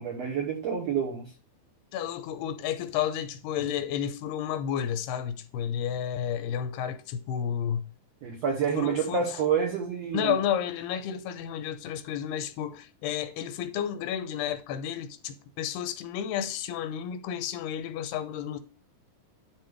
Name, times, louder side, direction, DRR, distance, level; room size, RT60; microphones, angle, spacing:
voice 1, 0.0-1.3 8.2-10.4, right 7 dB, 90° right, 1.4 m, -28 dB
voice 2, 1.9-7.8 8.8-9.3 10.1-18.6, left 9 dB, 80° left, 2.7 m, -31 dB
11.5 x 4.0 x 3.3 m
omnidirectional pair, 4.6 m